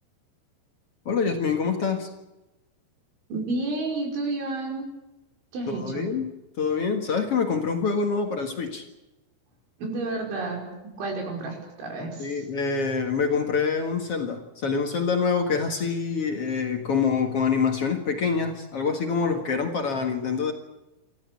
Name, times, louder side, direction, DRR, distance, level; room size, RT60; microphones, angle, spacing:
voice 1, 1.0-2.1 5.7-6.3 6.6-8.8 12.2-20.5, left 5 dB, 60° left, 4 dB, 1.5 m, -26 dB
voice 2, 3.3-4.9 5.5-6.1 9.8-12.4, right 2 dB, 75° right, 1 dB, 7.6 m, -31 dB
27.5 x 14.0 x 8.4 m, 1.0 s
omnidirectional pair, 5.5 m